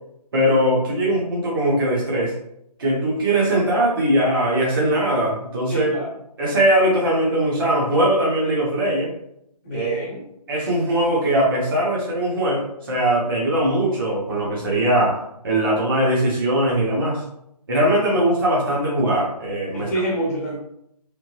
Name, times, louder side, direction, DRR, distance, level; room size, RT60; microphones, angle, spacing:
voice 1, 0.3-2.3 2.8-5.9 6.4-9.1 9.7-10.0 10.5-15.2 15.4-17.2 17.7-19.9, right 1 dB, 35° right, -5 dB, 1.2 m, -20 dB
voice 2, 5.7-6.1 9.6-10.2 19.7-20.6, right 1 dB, 20° left, -4 dB, 1.0 m, -26 dB
3.6 x 3.4 x 3.0 m, 0.74 s
figure-of-eight pair, 160°, 21 cm